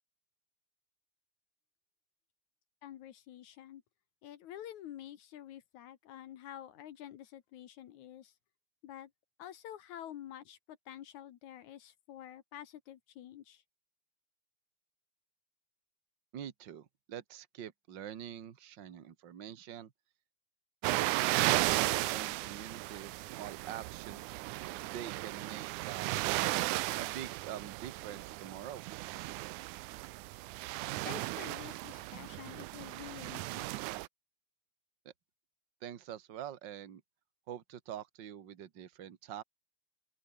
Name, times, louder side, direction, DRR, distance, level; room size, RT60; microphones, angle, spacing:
voice 1, 2.8-3.8 4.2-8.3 8.8-9.1 9.4-13.6 30.8-33.7, left 11 dB, 70° left, 2.5 m, -49 dB
voice 2, 16.3-19.9 20.9-24.4 24.8-26.2 27.0-28.8 35.8-37.0 37.5-39.4, right 10 dB, 45° right, 1.8 m, -45 dB
sound 1, 20.8-34.1, right 19 dB, 80° right, 2.0 m, -35 dB
open air
omnidirectional pair, 3.6 m